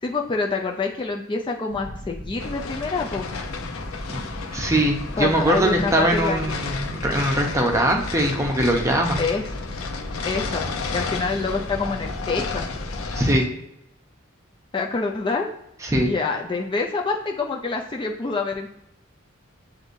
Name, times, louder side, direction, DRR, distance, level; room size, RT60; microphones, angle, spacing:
voice 1, 0.0-3.3 5.2-6.6 9.2-9.5 10.2-10.6 10.9-12.6 14.7-15.5 16.1-18.8, left 4 dB, 25° left, 1 dB, 0.4 m, -26 dB
sound 1, 1.7-13.2, equal, 10° left, 1.5 m, -36 dB
sound 2, 2.4-13.5, left 4 dB, 85° left, 0.6 m, -33 dB
voice 2, 4.5-9.2 13.1-13.5 15.8-16.1, right 1 dB, 15° right, 1 dB, 0.7 m, -21 dB
7.8 x 2.6 x 2.6 m, 0.83 s
head